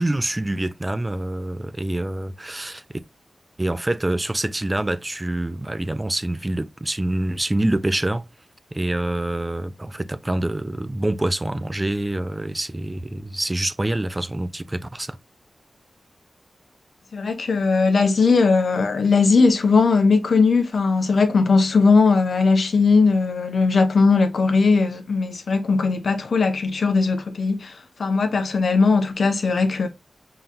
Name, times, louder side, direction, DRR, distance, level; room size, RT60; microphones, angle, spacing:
voice 1, 0.0-2.8 3.6-8.2 8.7-15.2, right 1 dB, 25° right, 0.4 m, -26 dB
voice 2, 17.1-29.9, left 4 dB, 75° left, 0.9 m, -19 dB
5.5 x 3.9 x 2.4 m
cardioid pair, 55°, 0 cm